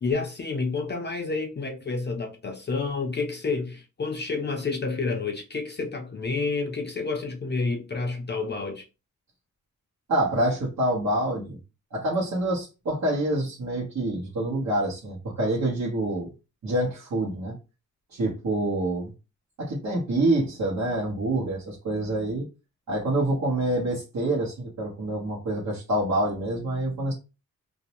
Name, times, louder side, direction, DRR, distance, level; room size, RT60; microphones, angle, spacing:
voice 1, 0.0-8.8, left 4 dB, 35° left, 0.4 m, -29 dB
voice 2, 10.1-11.6 11.9-16.3 16.6-17.6 18.1-19.1 19.6-22.5 22.9-27.1, right 1 dB, 65° right, 1.1 m, -26 dB
2.5 x 2.1 x 2.8 m
wide cardioid pair, 110°, 31 cm